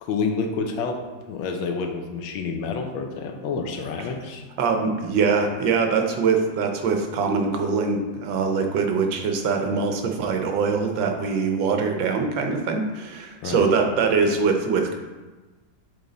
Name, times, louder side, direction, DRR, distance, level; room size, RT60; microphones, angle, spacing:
voice 1, 0.0-1.0 1.3-4.4 13.4-13.6, left 4 dB, 85° left, 4 dB, 1.5 m, -28 dB
voice 2, 4.6-14.9, right 5 dB, 75° right, 4 dB, 1.5 m, -23 dB
8.1 x 3.4 x 3.9 m, 1.2 s
omnidirectional pair, 2.1 m